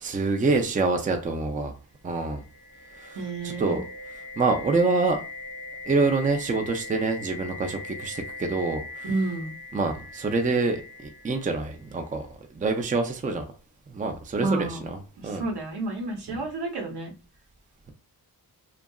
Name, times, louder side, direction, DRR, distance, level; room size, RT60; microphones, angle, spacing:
voice 1, 0.0-1.7 2.0-2.4 3.0-3.8 4.4-5.2 5.9-9.1 9.7-10.8 11.2-12.3 12.6-13.4 13.9-15.0 15.2-15.4, right 3 dB, 20° right, 0.4 m, -26 dB
sound 1, 2.1-12.0, left 3 dB, 65° left, 0.9 m, -41 dB
voice 2, 3.1-3.8 9.0-9.6 14.4-14.8 15.2-17.1, right 2 dB, 75° right, 0.9 m, -30 dB
2.7 x 2.3 x 2.3 m
cardioid pair, 90°, 39 cm